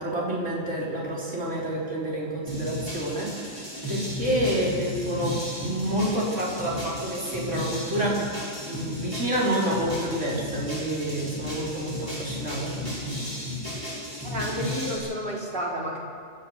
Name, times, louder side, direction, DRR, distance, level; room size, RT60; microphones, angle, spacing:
voice 1, 0.0-3.6 3.9-8.3 8.6-12.8, right 1 dB, 75° right, -5 dB, 4.3 m, -28 dB
sound 1, 2.5-15.0, left 1 dB, 15° right, 8.1 m, -34 dB
voice 2, 14.2-16.0, equal, 50° right, -3 dB, 3.7 m, -31 dB
28.0 x 13.5 x 7.1 m, 2.2 s
omnidirectional pair, 1.3 m